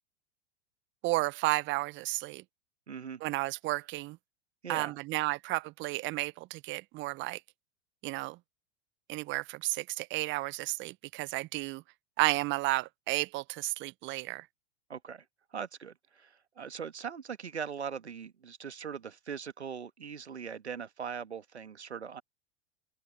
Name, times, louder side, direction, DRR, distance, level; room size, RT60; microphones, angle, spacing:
voice 1, 1.0-2.4 3.2-4.2 4.7-7.4 8.0-8.4 9.1-11.8 12.2-14.5, right 20 dB, 35° right, 1.0 m, -32 dB
voice 2, 2.9-3.2 4.6-5.0 14.9-15.2 15.5-22.2, right 7 dB, 80° right, 1.5 m, -40 dB
open air
figure-of-eight pair, 90°, 33 cm